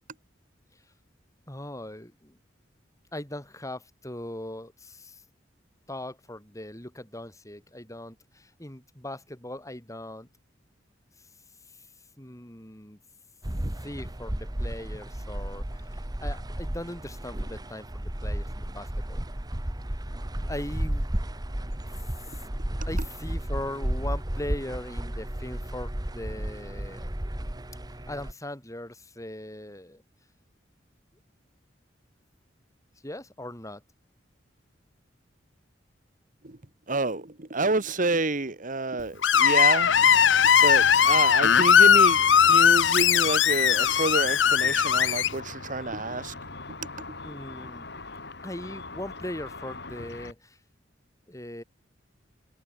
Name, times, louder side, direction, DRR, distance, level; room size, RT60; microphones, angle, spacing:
voice 1, 1.5-2.4 3.1-5.2 5.9-10.3 11.7-11.9 12.2-13.0 13.8-19.2 20.5-21.1 22.2-22.4 22.9-27.1 28.1-30.0 33.0-33.8 47.2-47.9 48.4-50.6 51.3-51.6, left 1 dB, 20° left, 7.0 m, -39 dB
sound 1, 13.4-28.3, right 1 dB, 20° right, 1.4 m, -33 dB
voice 2, 36.9-39.9 40.6-42.2 42.5-46.3, right 3 dB, 45° right, 1.8 m, -28 dB
Screech, 39.2-45.3, left 8 dB, 80° left, 0.7 m, -19 dB
Car / Traffic noise roadway noise / Engine, 39.8-50.3, left 3 dB, 65° left, 5.5 m, -41 dB
head